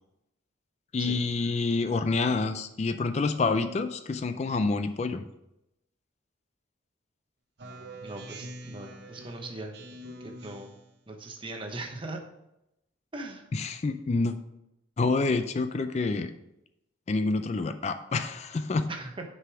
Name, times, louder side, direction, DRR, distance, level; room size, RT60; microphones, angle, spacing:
voice 1, 0.9-5.2 13.5-14.4 15.0-16.3 17.1-18.9, left 3 dB, 35° left, 10 dB, 0.3 m, -27 dB
Speech synthesizer, 7.6-10.9, right 1 dB, 55° right, 0.7 m, -44 dB
voice 2, 8.0-9.7 10.2-10.7 11.1-12.2 13.1-13.5 18.9-19.2, right 2 dB, 25° right, 3 dB, 0.9 m, -39 dB
6.5 x 4.9 x 4.8 m, 0.85 s
head